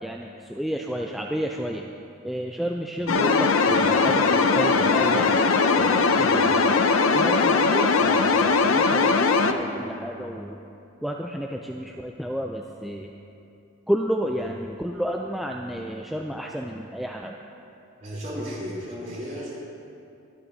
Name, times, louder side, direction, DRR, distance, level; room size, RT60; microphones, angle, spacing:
voice 1, 0.0-1.9 2.2-6.8 7.1-10.6 11.0-13.1 13.9-17.4, equal, ahead, 0 dB, 0.3 m, -31 dB
sound 1, 3.1-9.5, left 4 dB, 85° left, 0.6 m, -20 dB
voice 2, 18.0-19.6, equal, 35° right, -6 dB, 3.2 m, -34 dB
24.0 x 8.6 x 2.7 m, 2.7 s
head